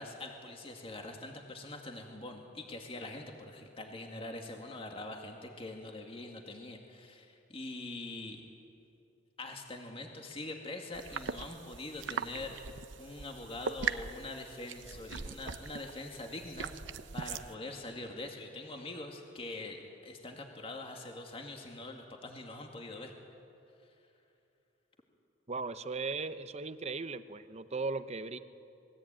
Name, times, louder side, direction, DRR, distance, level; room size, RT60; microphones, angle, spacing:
voice 1, 0.0-8.4 9.4-16.7 17.1-23.1, left 2 dB, 30° left, 2 dB, 2.1 m, -44 dB
sound 1, 10.9-17.5, right 5 dB, 75° right, 0.8 m, -40 dB
voice 2, 25.5-28.4, right 3 dB, 35° right, 12 dB, 0.9 m, -37 dB
26.5 x 21.0 x 9.0 m, 2.7 s
head